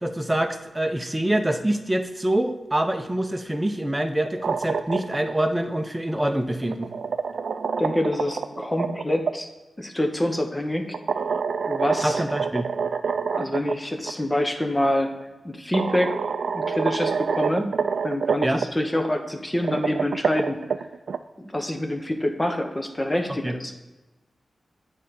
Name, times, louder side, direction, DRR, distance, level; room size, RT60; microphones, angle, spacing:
voice 1, 0.0-6.9 12.0-12.7 18.4-18.6 23.4-23.6, right 1 dB, 15° right, 6 dB, 0.7 m, -25 dB
sound 1, 4.2-5.3 6.5-9.3 10.9-13.7 14.1-14.2 15.2-15.3 15.7-18.7 19.5-21.2, right 5 dB, 80° right, 0.3 m, -27 dB
voice 2, 7.8-9.5 9.8-11.0 11.6-12.2 13.3-15.1 15.4-16.2 16.5-17.7 18.0-20.6 21.4-23.7, left 1 dB, 20° left, 5 dB, 1.0 m, -26 dB
9.0 x 3.8 x 4.2 m, 1.1 s
cardioid pair, 70°, 0 cm